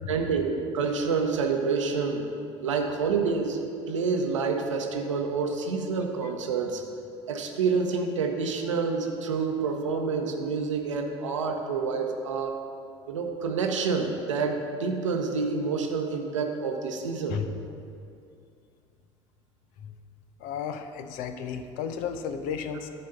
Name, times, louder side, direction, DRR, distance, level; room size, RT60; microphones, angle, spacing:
voice 1, 0.1-2.2 2.6-3.6 3.9-6.9 7.3-12.5 13.1-17.4, right 5 dB, 80° right, 3 dB, 0.8 m, -28 dB
voice 2, 20.4-22.9, left 7 dB, 60° left, 8 dB, 0.6 m, -33 dB
10.5 x 4.2 x 6.5 m, 2.5 s
figure-of-eight pair, 55°, 16 cm